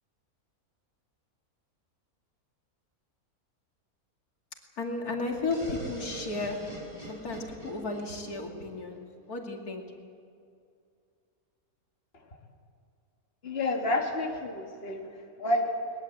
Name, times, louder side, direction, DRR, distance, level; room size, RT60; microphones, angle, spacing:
voice 1, 4.8-6.6 7.0-9.8, left 3 dB, 85° left, 1 dB, 3.0 m, -34 dB
sound 1, 5.5-9.3, right 1 dB, 25° right, 5.4 m, -43 dB
voice 2, 13.4-15.1 15.4-15.7, left 2 dB, 40° left, 1 dB, 2.2 m, -29 dB
21.5 x 21.0 x 8.0 m, 2.3 s
omnidirectional pair, 1.6 m